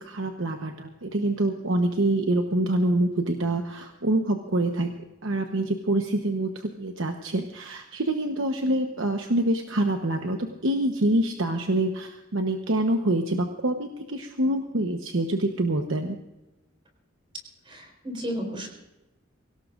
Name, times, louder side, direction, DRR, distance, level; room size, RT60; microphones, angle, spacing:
voice 1, 0.0-4.9 5.2-16.2, right 1 dB, 75° right, 4 dB, 1.1 m, -26 dB
voice 2, 17.7-18.7, equal, 25° right, 2 dB, 4.1 m, -33 dB
23.5 x 17.5 x 2.6 m, 1.0 s
head